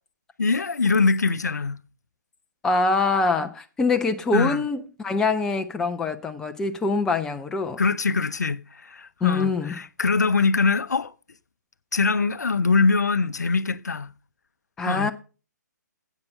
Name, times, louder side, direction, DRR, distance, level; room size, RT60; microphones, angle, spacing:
voice 1, 0.4-1.8 4.3-4.6 7.8-11.1 11.9-14.1 14.9-15.1, left 4 dB, 65° left, 0.6 m, -23 dB
voice 2, 2.6-7.8 9.2-9.8 14.8-15.1, left 3 dB, 5° left, 0.4 m, -24 dB
9.6 x 8.2 x 5.3 m
figure-of-eight pair, 130°, 10 cm